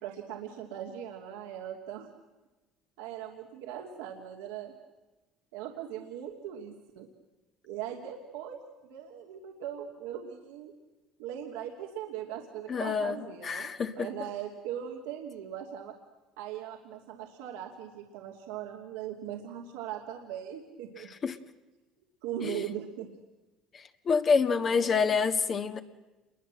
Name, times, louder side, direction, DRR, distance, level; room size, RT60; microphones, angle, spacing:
voice 1, 0.0-2.1 3.0-4.7 5.5-7.1 7.6-10.7 11.2-13.7 13.9-15.9 16.4-21.1 22.2-23.1 24.6-25.2, right 10 dB, 90° right, 1 dB, 2.7 m, -40 dB
voice 2, 12.7-14.1 21.2-21.4 22.4-22.6 23.7-25.8, left 5 dB, 40° left, 7 dB, 1.7 m, -27 dB
27.5 x 22.0 x 7.7 m, 1.1 s
supercardioid pair, 100°, 0 cm